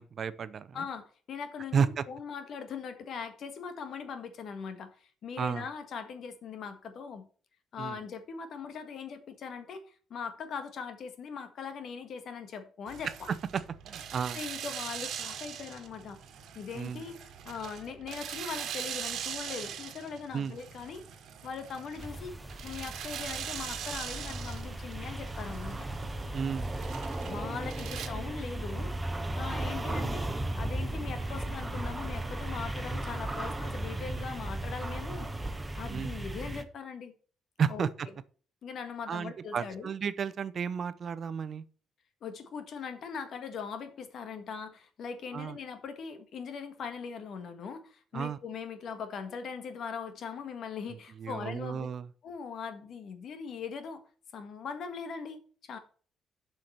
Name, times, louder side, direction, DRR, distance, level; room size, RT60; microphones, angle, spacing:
voice 1, 0.0-0.9 1.7-2.0 5.4-5.6 7.8-8.0 13.9-14.4 16.7-17.0 20.3-20.6 26.3-26.7 35.9-36.2 37.6-38.1 39.1-41.6 45.3-45.6 48.1-48.4 51.2-52.1, right 7 dB, 50° right, 0.7 m, -32 dB
voice 2, 0.7-7.3 7.7-13.3 14.3-16.2 16.5-17.2 17.4-21.0 21.4-25.9 27.3-28.9 29.4-30.3 30.6-35.3 35.8-37.1 37.7-37.9 38.6-39.9 42.2-51.9 52.2-54.0 54.3-55.8, left 6 dB, 65° left, 1.7 m, -40 dB
sound 1, 12.9-28.1, right 9 dB, 75° right, 1.4 m, -42 dB
sound 2, 22.0-36.6, right 1 dB, 15° right, 1.1 m, -36 dB
7.5 x 5.7 x 6.6 m
cardioid pair, 90°, 0 cm